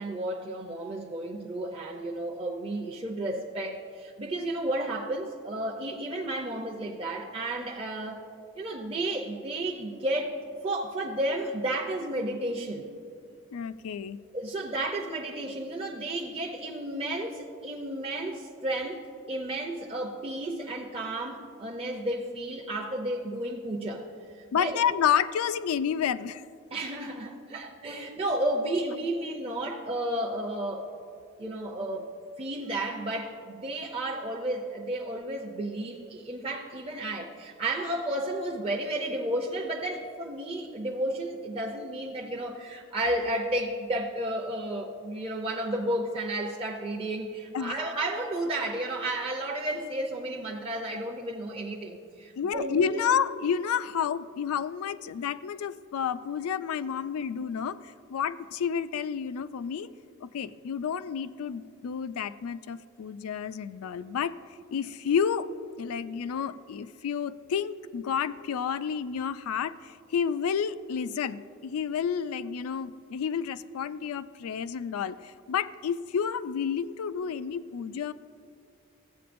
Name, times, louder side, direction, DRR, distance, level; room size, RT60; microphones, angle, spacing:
voice 1, 0.0-8.2 8.6-10.4 10.6-12.9 14.3-19.0 19.3-24.0 24.3-24.7 26.7-30.9 31.4-32.1 32.4-53.0, right 1 dB, 25° right, -1 dB, 0.5 m, -32 dB
voice 2, 13.5-14.2 24.5-26.4 47.5-47.8 52.4-59.9 60.2-64.3 64.7-65.5 65.8-78.1, left 7 dB, 90° left, 14 dB, 0.3 m, -30 dB
14.5 x 8.4 x 2.6 m, 2.3 s
head